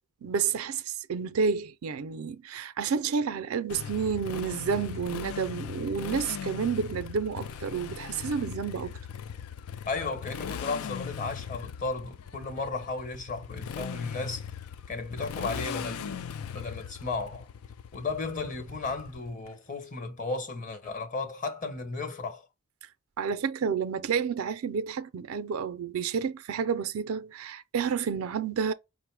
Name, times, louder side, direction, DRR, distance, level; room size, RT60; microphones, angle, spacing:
voice 1, 0.2-9.0 23.2-28.7, right 6 dB, 75° right, 0.4 m, -30 dB
Motorcycle, 3.7-19.5, left 7 dB, 85° left, 0.4 m, -39 dB
voice 2, 9.8-14.5 14.9-17.5 17.9-22.4, left 3 dB, 40° left, 1.0 m, -34 dB
5.3 x 2.0 x 4.5 m
head